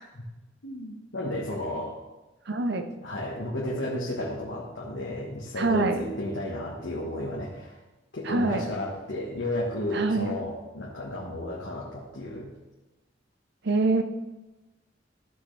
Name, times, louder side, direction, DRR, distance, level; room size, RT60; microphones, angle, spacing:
voice 1, 0.6-2.0 3.0-7.8 8.1-12.5, left 1 dB, 80° left, -4 dB, 1.5 m, -33 dB
voice 2, 2.5-2.9 5.6-6.0 8.2-8.7 9.9-10.4 13.6-14.0, right 3 dB, 60° right, 7 dB, 0.8 m, -25 dB
14.5 x 6.4 x 3.4 m, 1.1 s
head